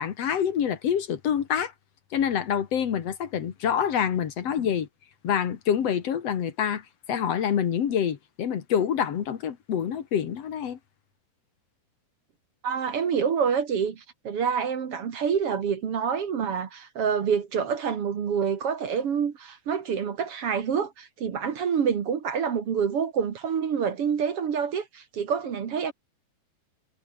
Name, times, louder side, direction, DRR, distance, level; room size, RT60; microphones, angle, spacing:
voice 1, 0.0-1.7 2.1-4.9 5.2-10.8, left 8 dB, 50° left, 2.1 m, -26 dB
voice 2, 12.6-25.9, right 7 dB, 50° right, 2.0 m, -27 dB
omnidirectional pair, 4.7 m